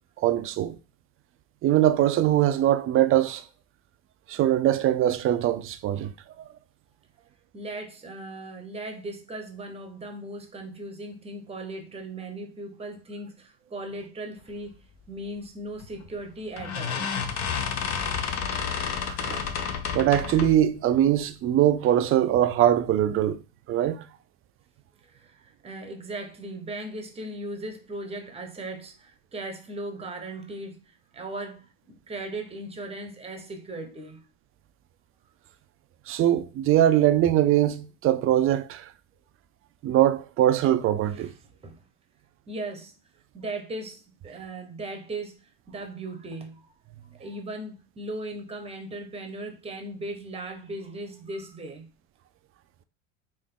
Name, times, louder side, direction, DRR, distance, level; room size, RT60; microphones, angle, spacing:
voice 1, 0.2-0.8 1.6-3.4 4.3-6.1 19.1-19.4 19.9-23.4 23.7-24.0 36.1-38.9 39.8-41.3, right 12 dB, 35° right, 0.5 m, -22 dB
voice 2, 7.5-14.8 15.1-17.1 25.0-34.2 41.1-41.8 42.5-42.9 43.3-46.7 47.2-51.9, right 2 dB, 15° right, 0.9 m, -38 dB
sound 1, 15.8-16.1 16.6-20.7, left 7 dB, 45° left, 0.8 m, -30 dB
3.7 x 2.6 x 3.7 m
supercardioid pair, 100°, 36 cm